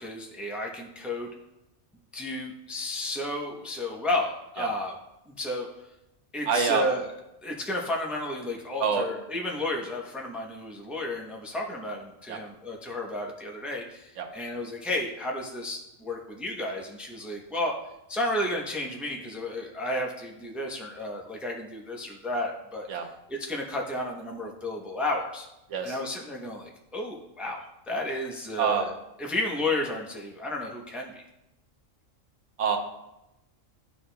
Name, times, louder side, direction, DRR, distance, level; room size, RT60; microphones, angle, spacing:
voice 1, 0.0-1.3 2.1-4.9 5.3-5.7 6.3-7.1 7.4-17.8 18.1-22.9 23.3-25.5 25.8-28.9 29.2-31.2, left 1 dB, ahead, 0 dB, 0.5 m, -32 dB
voice 2, 6.5-6.8 8.8-9.1 12.3-12.4 14.2-14.3 22.9-23.1 25.7-26.0 28.6-28.8 32.6-32.8, right 6 dB, 65° right, 3 dB, 1.1 m, -26 dB
11.0 x 4.3 x 2.2 m, 0.90 s
omnidirectional pair, 1.4 m